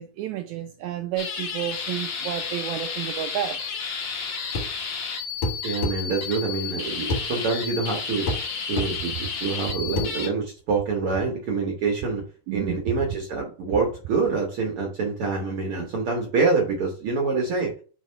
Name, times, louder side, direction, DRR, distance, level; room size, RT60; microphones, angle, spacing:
voice 1, 0.0-3.6 12.5-12.8, right 12 dB, 80° right, 1.7 m, -31 dB
sound 1, 1.2-10.3, left 6 dB, 75° left, 1.0 m, -32 dB
sound 2, 4.5-4.8 5.4-6.0 7.1-7.3 8.3-8.5 8.8-8.9 10.0-10.1, left 2 dB, 60° left, 2.0 m, -26 dB
voice 2, 5.6-8.3 8.7-12.2 12.5-17.7, right 4 dB, 60° right, 1.5 m, -26 dB
4.8 x 4.1 x 5.4 m
omnidirectional pair, 3.7 m